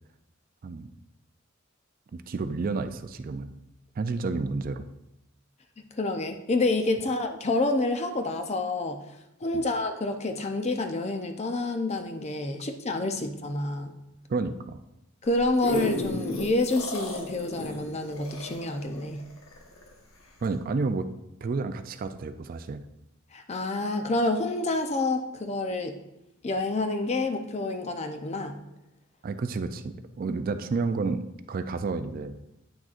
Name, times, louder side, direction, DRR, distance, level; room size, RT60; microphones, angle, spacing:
voice 1, 2.1-3.5 4.0-4.9 9.5-9.6 14.3-14.8 20.4-21.1 21.4-22.8 29.2-32.4, right 4 dB, 45° right, 9 dB, 0.3 m, -30 dB
voice 2, 6.0-9.0 9.4-13.9 15.2-19.2 23.3-26.0 26.4-28.6, left 2 dB, 30° left, 6 dB, 0.6 m, -28 dB
sound 1, 15.3-19.9 20.4-20.5, left 1 dB, 90° left, 1.2 m, -34 dB
8.8 x 6.2 x 2.5 m, 0.88 s
head